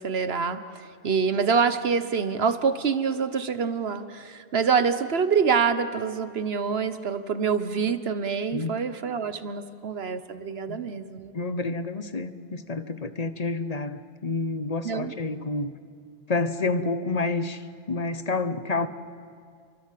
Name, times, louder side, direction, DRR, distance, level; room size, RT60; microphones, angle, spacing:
voice 1, 0.0-11.3 14.8-15.1, right 6 dB, 70° right, 11 dB, 1.4 m, -26 dB
voice 2, 8.5-8.8 10.7-10.8 11.3-15.8 16.3-18.9, left 3 dB, 40° left, 11 dB, 1.0 m, -29 dB
28.5 x 24.5 x 7.6 m, 2.2 s
omnidirectional pair, 1.1 m